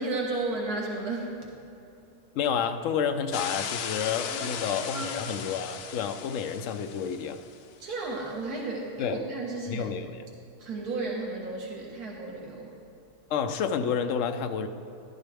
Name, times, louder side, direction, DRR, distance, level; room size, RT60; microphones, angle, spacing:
voice 1, 0.0-1.3 4.4-5.1 7.8-9.9 10.6-12.7, right 2 dB, 80° right, -2 dB, 1.7 m, -33 dB
voice 2, 2.3-7.4 9.0-9.2 9.7-10.2 13.3-14.7, left 7 dB, 65° left, 8 dB, 0.9 m, -30 dB
sound 1, 3.3-7.6, left 8 dB, 85° left, 1.2 m, -37 dB
12.0 x 12.0 x 3.4 m, 2.8 s
omnidirectional pair, 1.6 m